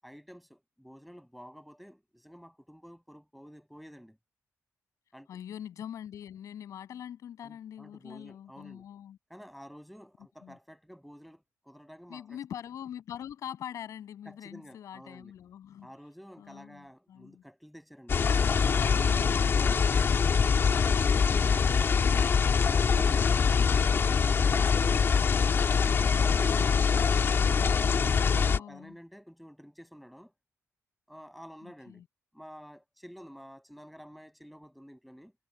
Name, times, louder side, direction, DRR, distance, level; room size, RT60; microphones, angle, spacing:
voice 1, 0.0-4.2 5.1-5.4 7.4-8.9 9.3-12.4 14.3-15.3 15.8-19.2 19.7-20.4 21.2-21.9 23.5-25.4 26.1-26.9 27.6-30.3 31.1-32.0 32.3-35.3, equal, ahead, 7.7 m, -50 dB
voice 2, 5.3-9.2 10.4-10.6 12.1-15.9 16.4-17.4 28.4-29.0 31.6-32.0, left 10 dB, 80° left, 6.5 m, -43 dB
sound 1, 18.1-28.6, left 6 dB, 45° left, 2.5 m, -24 dB
wide cardioid pair, 145°, 5 cm